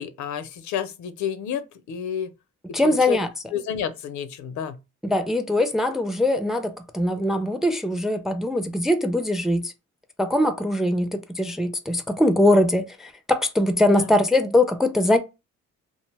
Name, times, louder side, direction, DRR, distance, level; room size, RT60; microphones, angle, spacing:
voice 1, 0.0-2.3 2.7-3.2 3.5-4.8 13.9-14.1, left 8 dB, 75° left, 0.6 m, -30 dB
voice 2, 2.7-3.3 5.0-9.7 10.2-15.2, left 1 dB, ahead, 0.4 m, -22 dB
2.6 x 2.0 x 3.2 m
cardioid pair, 90°, 30 cm